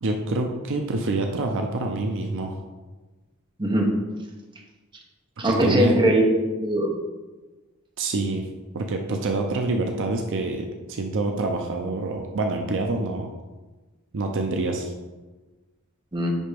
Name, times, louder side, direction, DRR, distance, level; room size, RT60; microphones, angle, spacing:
voice 1, 0.0-2.6 5.5-6.0 8.0-8.5 8.7-13.3 14.1-14.9, right 2 dB, 60° right, 3 dB, 0.5 m, -26 dB
voice 2, 5.4-6.9 16.1-16.3, equal, 20° right, 0 dB, 0.9 m, -21 dB
9.5 x 3.4 x 3.4 m, 1.2 s
head